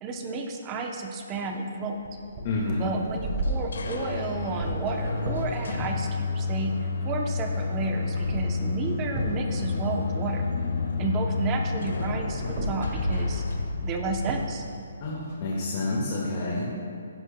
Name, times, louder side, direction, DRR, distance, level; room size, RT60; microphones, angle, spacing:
voice 1, 0.0-2.0 2.8-10.4 11.0-13.4 13.8-14.6, right 3 dB, 15° right, 3 dB, 0.7 m, -32 dB
sound 1, 1.9-11.1 11.4-15.6, right 1 dB, 30° right, 1.6 m, -37 dB
voice 2, 2.4-2.9 15.0-16.6, left 2 dB, 30° left, -6 dB, 1.7 m, -28 dB
sound 2, 3.4-15.1, left 3 dB, 80° left, 1.4 m, -30 dB
15.5 x 11.0 x 2.2 m, 2.4 s
hypercardioid pair, 175°, 0 cm